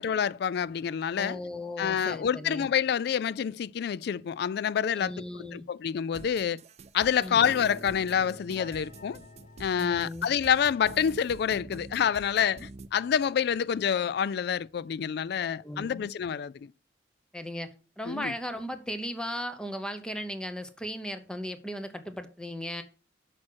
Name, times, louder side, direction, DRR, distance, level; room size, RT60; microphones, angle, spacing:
voice 1, 0.0-1.4 1.8-5.1 5.5-6.6 6.9-9.2 9.6-16.7 18.0-18.3, left 8 dB, 60° left, 0.3 m, -27 dB
voice 2, 1.2-2.7 4.9-5.6 7.2-7.5 9.8-10.3 15.6-16.1 17.3-17.7 18.0-22.8, equal, 5° left, 0.8 m, -37 dB
sound 1, 6.1-12.9, right 3 dB, 35° right, 0.4 m, -47 dB
Piano, 7.3-13.6, left 1 dB, 40° left, 1.4 m, -49 dB
6.4 x 6.0 x 6.2 m
head